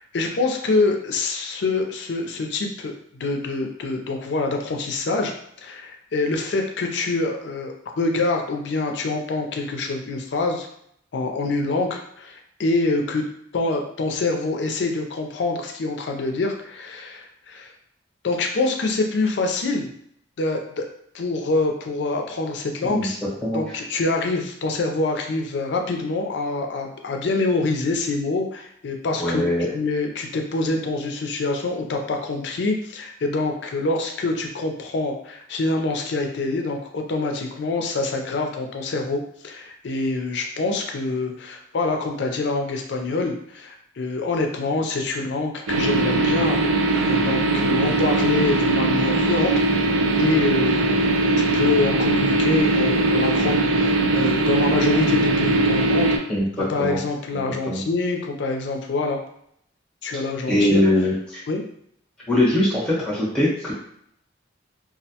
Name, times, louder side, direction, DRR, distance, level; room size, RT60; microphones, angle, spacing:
voice 1, 0.0-5.3 5.6-10.7 11.1-13.2 13.5-17.7 18.2-19.9 20.4-20.8 21.1-23.2 23.5-29.4 29.7-56.1 56.7-59.2 60.0-60.8 61.5-61.6, left 3 dB, 60° left, 3 dB, 0.4 m, -25 dB
voice 2, 29.2-29.7 56.3-57.0 57.6-57.8 60.5-61.4 62.3-63.7, left 1 dB, 5° left, -7 dB, 0.9 m, -21 dB
sound 1, 45.7-56.2, right 2 dB, 85° right, 0.4 m, -20 dB
2.3 x 2.1 x 2.7 m, 0.70 s
head